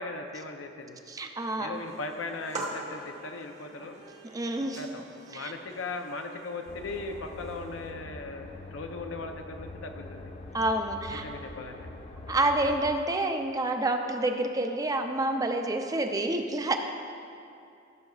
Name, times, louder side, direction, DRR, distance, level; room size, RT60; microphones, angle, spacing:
voice 1, 0.0-1.0 1.6-4.0 4.8-10.3 11.1-11.9, left 3 dB, 80° left, 5 dB, 0.6 m, -38 dB
voice 2, 1.1-1.8 4.3-4.8 5.3-5.5 10.5-11.2 12.3-16.8, right 2 dB, 20° right, 5 dB, 0.4 m, -28 dB
sound 1, 1.7-7.9, right 2 dB, 35° right, 1.1 m, -44 dB
sound 2, 6.7-12.9, left 2 dB, 35° left, 0.5 m, -44 dB
15.0 x 6.5 x 2.4 m, 2.6 s
head